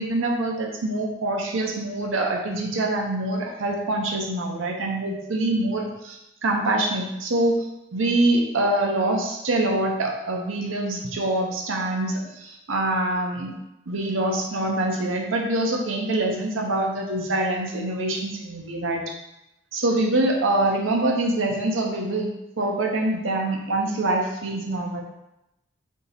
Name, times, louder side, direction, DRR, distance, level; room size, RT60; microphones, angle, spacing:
voice 1, 0.0-7.6 7.9-13.6 13.9-19.0 19.7-22.3 22.6-25.0, right 2 dB, 90° right, 0 dB, 0.7 m, -25 dB
3.6 x 2.8 x 4.0 m, 0.89 s
head